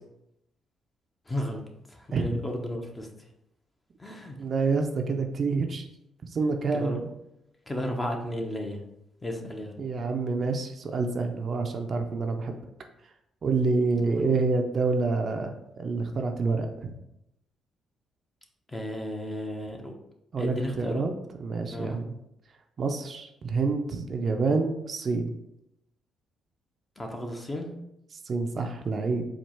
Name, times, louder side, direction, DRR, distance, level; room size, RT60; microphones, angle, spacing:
voice 1, 1.3-1.6 1.9-3.1 4.0-4.4 6.7-7.0 7.7-8.8 9.2-9.8 13.9-14.2 18.7-19.9 20.4-21.0 21.7-22.0 27.0-27.7, left 1 dB, 15° left, 2 dB, 0.8 m, -33 dB
voice 2, 4.4-5.9 6.3-7.1 9.8-12.5 13.4-15.5 15.8-16.9 20.3-21.1 21.4-22.0 22.8-25.3 28.3-29.3, right 4 dB, 50° right, 5 dB, 0.5 m, -27 dB
4.5 x 2.4 x 4.3 m, 0.84 s
cardioid pair, 90°, 0 cm